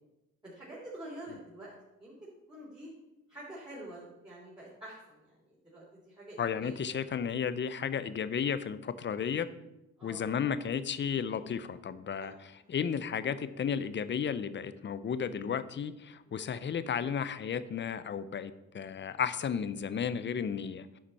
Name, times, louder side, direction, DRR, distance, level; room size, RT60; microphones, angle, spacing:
voice 1, 0.4-1.7 2.0-2.1 2.5-2.9 3.3-6.8 10.0-10.5 12.2-12.3 16.2-16.5, right 1 dB, 15° right, -8 dB, 3.3 m, -47 dB
voice 2, 6.4-9.5 10.0-20.9, left 7 dB, 40° left, 14 dB, 0.6 m, -33 dB
9.8 x 6.0 x 4.2 m, 0.96 s
cardioid pair, 90°, 30 cm